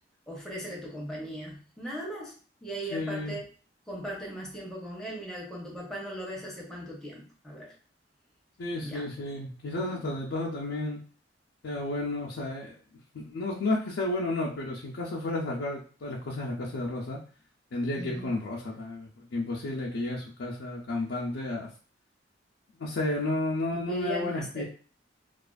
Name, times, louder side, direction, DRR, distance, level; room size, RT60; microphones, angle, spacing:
voice 1, 0.3-2.3 2.6-3.4 3.9-7.7 8.8-9.1 9.9-10.2 18.0-18.4 23.7-24.6, right 1 dB, 5° left, -4 dB, 0.7 m, -38 dB
voice 2, 2.9-3.4 8.6-11.0 11.6-12.8 13.1-17.2 17.7-21.7 22.8-24.6, left 2 dB, 80° left, -3 dB, 0.4 m, -32 dB
2.4 x 2.3 x 2.3 m, 0.41 s
head